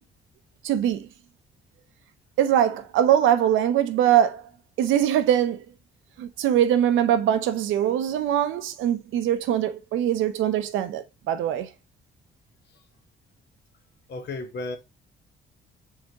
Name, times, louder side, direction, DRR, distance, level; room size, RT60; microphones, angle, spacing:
voice 1, 0.6-1.1 2.4-4.4 4.8-5.6 6.2-11.7, right 10 dB, 90° right, 0.6 m, -22 dB
voice 2, 14.1-14.8, left 2 dB, 60° left, 1.0 m, -33 dB
4.7 x 3.5 x 2.8 m
cardioid pair, 90°, 20 cm